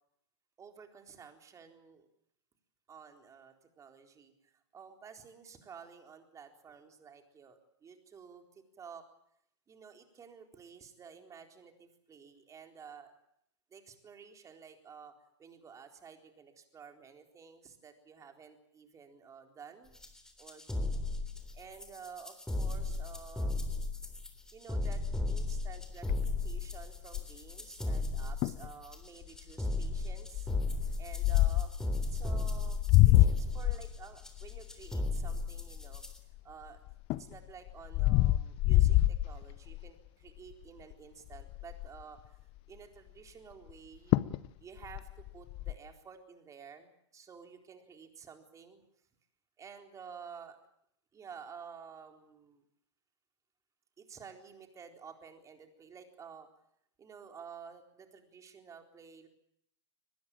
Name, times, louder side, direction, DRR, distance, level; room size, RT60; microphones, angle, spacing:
voice 1, 0.6-2.1 2.9-9.0 9.7-13.1 13.7-15.1 15.4-20.0 20.4-21.0 21.5-23.9 24.5-30.5 31.0-31.7 32.1-32.8 33.1-36.0 36.4-36.8 37.2-42.4 42.7-44.2 44.6-48.8 49.6-50.6 51.1-52.6 54.0-56.5 57.0-59.3, right 6 dB, 20° right, 5 dB, 4.0 m, -52 dB
sound 1, 19.9-36.2, left 2 dB, 5° left, 3.4 m, -35 dB
sound 2, 26.1-27.5 28.1-28.2 28.4-28.7 29.2-29.5 30.3-31.8 32.5-36.4 36.9-39.9 40.4-40.6 40.9-41.0 41.3-42.0 43.7-43.8 44.1-44.5 44.8-45.7, left 16 dB, 35° left, 0.9 m, -27 dB
23.5 x 20.0 x 8.8 m, 0.72 s
hypercardioid pair, 110°, 16 cm